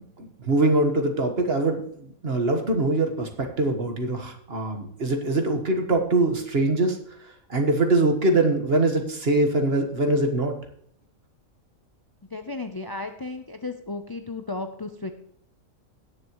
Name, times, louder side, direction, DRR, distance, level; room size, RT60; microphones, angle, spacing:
voice 1, 0.2-7.0 7.5-10.5, right 2 dB, 45° right, 5 dB, 1.7 m, -23 dB
voice 2, 12.3-15.1, left 3 dB, 30° left, 7 dB, 0.4 m, -34 dB
17.5 x 6.8 x 3.1 m, 0.66 s
omnidirectional pair, 1.5 m